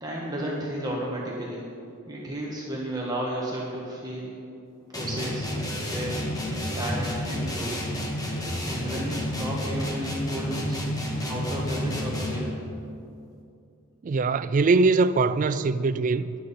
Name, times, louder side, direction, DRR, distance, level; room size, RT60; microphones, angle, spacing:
voice 1, 0.0-1.6 2.1-4.4 4.9-5.5 5.8-6.2 6.7-7.8 8.7-10.8 11.3-12.6, right 1 dB, 20° right, 1.4 m, -33 dB
sound 1, 4.9-12.6, left 1 dB, 15° left, 1.6 m, -30 dB
voice 2, 14.0-16.4, right 3 dB, 35° right, 0.3 m, -22 dB
18.5 x 11.0 x 4.2 m
head